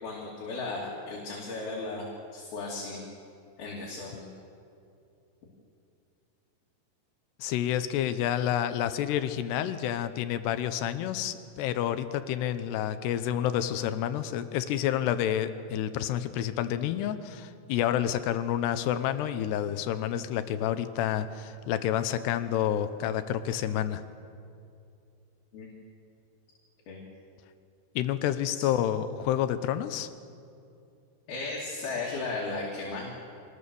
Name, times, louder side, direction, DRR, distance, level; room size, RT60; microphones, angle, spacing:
voice 1, 0.0-2.1 2.3-3.0 3.6-4.3 25.5-25.7 26.9-27.0 28.5-28.7 31.3-33.1, left 3 dB, 65° left, -4 dB, 4.5 m, -35 dB
voice 2, 7.4-24.0 28.0-30.1, left 10 dB, 80° left, 11 dB, 2.9 m, -29 dB
25.5 x 19.5 x 7.0 m, 2.5 s
omnidirectional pair, 4.8 m